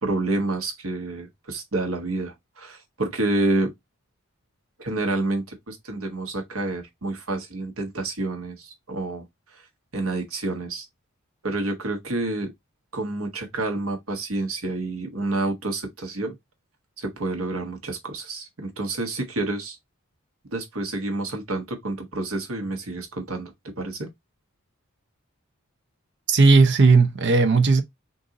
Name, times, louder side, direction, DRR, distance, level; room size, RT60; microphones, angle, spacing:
voice 1, 0.0-3.7 4.8-9.2 9.5-9.6 9.9-10.9 11.4-12.5 12.9-16.3 17.0-19.8 20.5-24.1, right 2 dB, 75° right, 1.2 m, -28 dB
voice 2, 26.3-27.8, right 4 dB, 55° right, 0.6 m, -16 dB
3.9 x 2.6 x 3.7 m
head